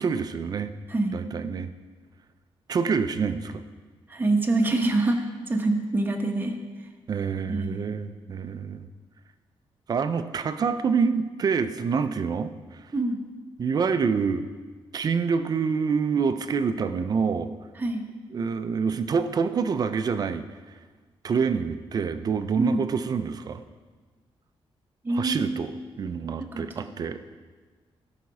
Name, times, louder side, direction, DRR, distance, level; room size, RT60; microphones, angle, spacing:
voice 1, 0.0-0.7 1.1-1.7 2.7-3.6 7.1-8.9 9.9-12.8 13.6-14.5 14.9-17.5 18.3-20.4 21.2-23.6 25.1-25.7 26.0-27.2, right 5 dB, 40° right, 10 dB, 0.5 m, -26 dB
voice 2, 4.1-6.6 7.5-7.8 12.9-13.2 17.8-18.0 22.6-22.8 25.0-25.6 26.5-26.7, right 2 dB, 20° right, 3 dB, 1.0 m, -25 dB
16.5 x 5.9 x 4.8 m, 1.4 s
wide cardioid pair, 175°, 10 cm